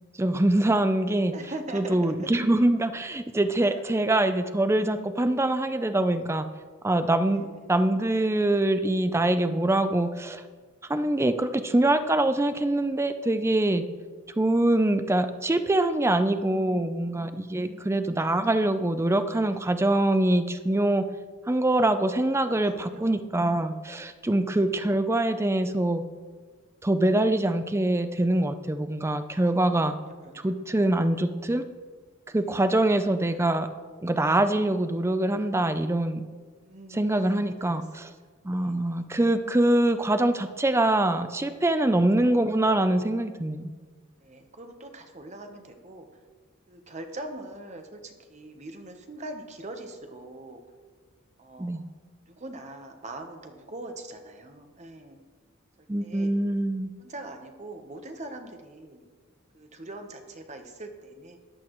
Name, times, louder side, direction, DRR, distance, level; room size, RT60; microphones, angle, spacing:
voice 1, 0.2-1.3 1.7-6.4 6.8-10.4 10.9-13.8 14.4-21.1 21.5-26.0 26.8-29.9 30.3-31.6 32.3-33.7 34.0-36.2 36.9-38.1 38.4-43.7 51.6-51.8 55.9-56.9, right 1 dB, 10° right, 10 dB, 0.5 m, -24 dB
voice 2, 1.3-2.3 3.7-3.8 7.3-7.7 16.4-18.0 22.5-23.2 24.1-24.6 29.3-29.6 30.0-31.2 32.3-32.9 36.6-38.1 38.5-39.1 44.2-46.1 46.7-50.6 51.4-51.8 52.3-55.2 56.0-56.3 57.0-59.0 59.5-61.4, right 2 dB, 30° right, 5 dB, 1.0 m, -43 dB
14.0 x 11.0 x 3.1 m, 1.5 s
head